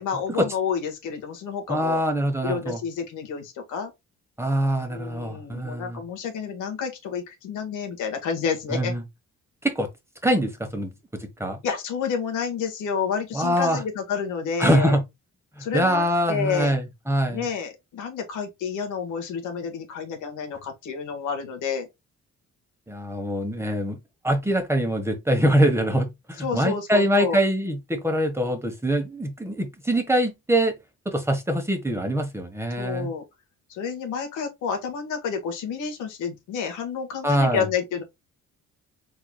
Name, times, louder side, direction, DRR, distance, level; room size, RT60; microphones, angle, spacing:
voice 1, 0.0-2.0 2.4-3.9 4.9-8.9 11.6-15.0 15.6-16.8 17.3-21.9 26.4-27.4 32.8-33.2 33.7-38.0, left 6 dB, 90° left, 1.6 m, -29 dB
voice 2, 1.7-2.8 4.4-6.0 8.7-9.0 9.6-9.9 10.2-10.9 11.2-11.6 13.3-13.8 14.6-15.0 15.6-17.5 22.9-24.0 24.2-30.7 31.0-33.1 37.2-37.7, right 1 dB, 10° right, 1.3 m, -24 dB
4.7 x 4.0 x 2.3 m
cardioid pair, 90°, 30 cm